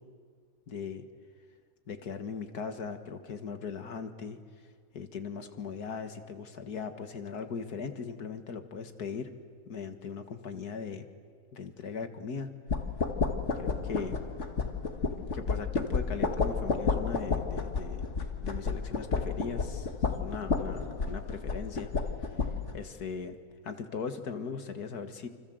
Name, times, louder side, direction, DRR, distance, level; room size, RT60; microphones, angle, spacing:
voice 1, 0.7-1.1 1.9-4.4 4.9-9.3 9.7-11.1 11.5-12.5 13.5-14.2 15.3-18.1 18.4-21.9 22.7-23.4 23.6-25.3, left 5 dB, 75° left, 9 dB, 2.3 m, -39 dB
sound 1, 12.7-22.8, left 4 dB, 50° left, 2.0 m, -31 dB
29.5 x 25.5 x 8.0 m, 2.1 s
omnidirectional pair, 1.6 m